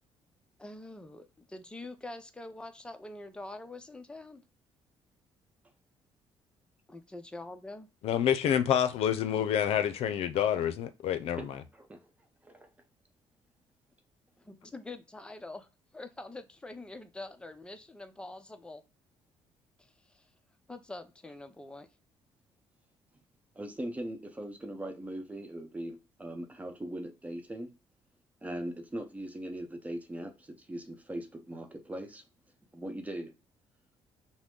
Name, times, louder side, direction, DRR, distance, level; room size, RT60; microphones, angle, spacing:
voice 1, 0.6-4.4 6.9-7.9 14.4-18.8 19.8-20.3 20.7-21.9, left 2 dB, 10° left, 0.6 m, -45 dB
voice 2, 8.0-11.6, left 9 dB, 70° left, 0.6 m, -28 dB
voice 3, 23.5-27.7 28.4-32.2 32.7-33.3, right 1 dB, 15° right, 0.9 m, -40 dB
6.0 x 2.1 x 3.7 m
cardioid pair, 115°, 10 cm